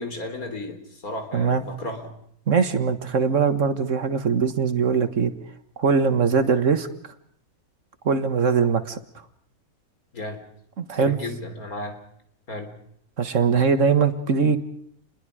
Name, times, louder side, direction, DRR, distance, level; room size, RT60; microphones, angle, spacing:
voice 1, 0.0-2.2 10.1-10.4 11.0-12.0 12.5-12.7, left 2 dB, 75° left, 6 dB, 3.8 m, -34 dB
voice 2, 2.5-5.3 5.8-6.9 8.1-9.0 10.8-11.2 13.2-14.6, right 5 dB, 60° right, 9 dB, 1.8 m, -21 dB
29.0 x 21.5 x 5.0 m, 0.68 s
omnidirectional pair, 1.5 m